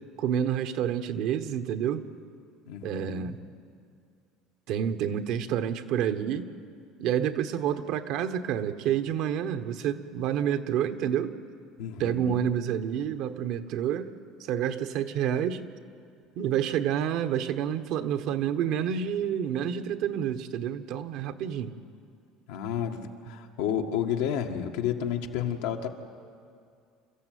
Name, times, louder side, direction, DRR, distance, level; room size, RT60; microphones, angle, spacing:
voice 1, 0.2-2.0 2.8-3.4 4.7-6.5 7.0-11.4 12.0-14.1 14.5-15.6 16.4-21.7, right 9 dB, 65° right, 8 dB, 1.2 m, -28 dB
voice 2, 2.7-3.4 11.8-12.4 22.5-25.9, left 9 dB, 85° left, 3 dB, 1.8 m, -31 dB
27.5 x 14.0 x 9.4 m, 2.3 s
supercardioid pair, 110°, 0 cm